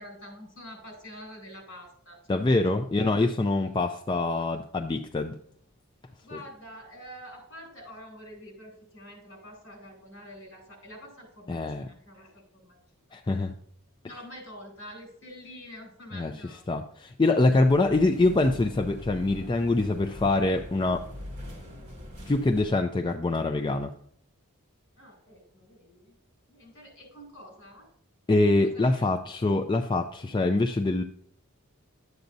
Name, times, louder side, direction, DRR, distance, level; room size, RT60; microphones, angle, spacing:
voice 1, 0.0-2.6 4.1-4.6 6.2-12.8 13.1-13.2 14.0-16.8 17.8-17.9 25.0-26.1 26.5-27.9 28.6-29.1, equal, 60° left, 1 dB, 4.4 m, -47 dB
voice 2, 2.3-5.3 6.3-6.4 11.5-11.9 13.1-13.5 16.1-16.3 16.7-21.0 22.3-23.9 28.3-31.0, left 2 dB, 20° left, 5 dB, 0.4 m, -24 dB
sound 1, 17.4-22.7, left 1 dB, 35° right, 2.0 m, -42 dB
11.5 x 8.0 x 2.7 m, 0.64 s
head